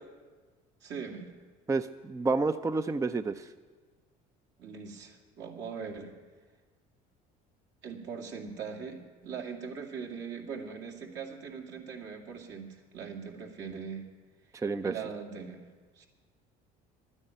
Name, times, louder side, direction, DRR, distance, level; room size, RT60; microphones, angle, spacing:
voice 1, 0.8-1.3 4.6-6.1 7.8-14.1 14.8-15.6 16.0-16.1, right 6 dB, 65° right, 1 dB, 2.4 m, -41 dB
voice 2, 1.7-3.5 14.5-14.9, right 3 dB, 15° right, 10 dB, 0.5 m, -29 dB
12.0 x 9.8 x 9.1 m, 1.4 s
supercardioid pair, 85°, 20 cm